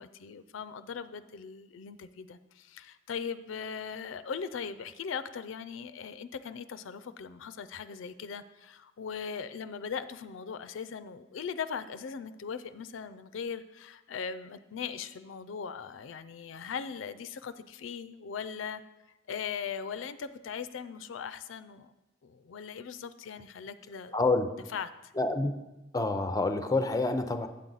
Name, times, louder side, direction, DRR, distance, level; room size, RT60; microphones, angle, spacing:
voice 1, 0.0-18.8 19.3-21.9 22.2-24.1 24.7-25.1, left 6 dB, 85° left, 12 dB, 0.4 m, -39 dB
voice 2, 24.1-24.5 25.2-25.5 25.9-27.5, left 2 dB, 20° left, 8 dB, 0.5 m, -27 dB
8.6 x 7.4 x 3.9 m, 0.99 s
head